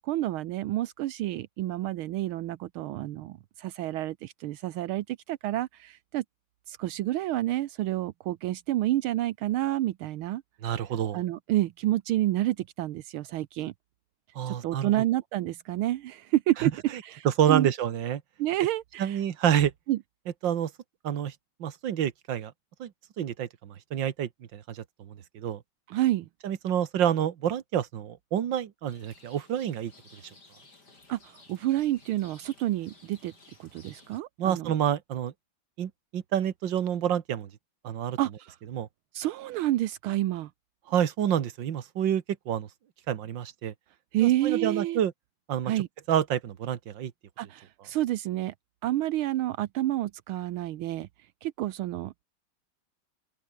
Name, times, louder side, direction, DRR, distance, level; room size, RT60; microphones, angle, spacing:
voice 1, 0.0-6.2 6.7-10.4 11.1-13.7 14.5-16.7 17.0-17.7 18.4-19.2 19.9-20.0 25.9-26.3 31.1-33.3 33.6-34.7 38.2-38.6 39.1-40.5 44.1-45.0 45.6-45.9 47.4-48.5 48.8-51.1 51.4-52.2, right 14 dB, 80° right, 1.6 m, -29 dB
voice 2, 10.6-11.2 14.4-14.9 16.6-16.7 17.3-18.2 19.0-19.7 20.4-20.7 21.0-21.3 21.6-22.5 22.8-22.9 23.2-25.6 26.4-29.9 34.4-35.3 35.8-37.5 37.8-38.2 38.7-38.9 40.9-42.7 43.1-43.7 44.2-45.1 45.5-45.7 46.1-47.1, right 10 dB, 60° right, 2.0 m, -28 dB
Rain, 28.9-34.2, left 3 dB, 50° left, 5.4 m, -56 dB
open air
omnidirectional pair, 2.3 m